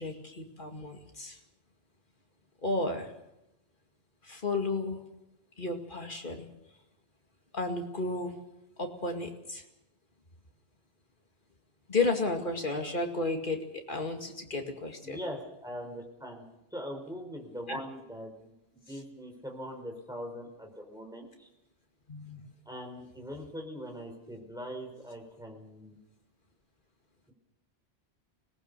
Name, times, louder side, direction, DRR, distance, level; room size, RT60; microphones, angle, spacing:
voice 1, 0.0-1.4 2.6-3.1 4.2-5.1 5.6-6.5 7.5-8.4 8.8-9.6 11.9-15.2 17.7-17.8 22.1-22.4, left 3 dB, 45° left, 3 dB, 2.5 m, -33 dB
voice 2, 15.0-16.4 16.7-18.5 18.9-21.5 22.7-26.0, equal, 5° right, 1 dB, 4.5 m, -41 dB
24.5 x 18.5 x 6.8 m, 0.91 s
omnidirectional pair, 1.1 m